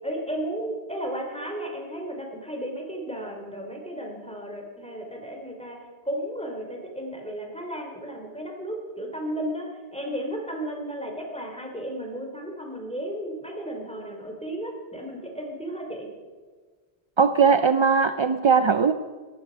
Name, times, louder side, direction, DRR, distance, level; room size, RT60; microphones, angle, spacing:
voice 1, 0.0-5.8 6.0-16.1, right 1 dB, 5° left, 1 dB, 3.4 m, -34 dB
voice 2, 17.2-18.9, right 6 dB, 50° right, 10 dB, 0.3 m, -19 dB
18.5 x 14.0 x 5.3 m, 1.5 s
omnidirectional pair, 1.1 m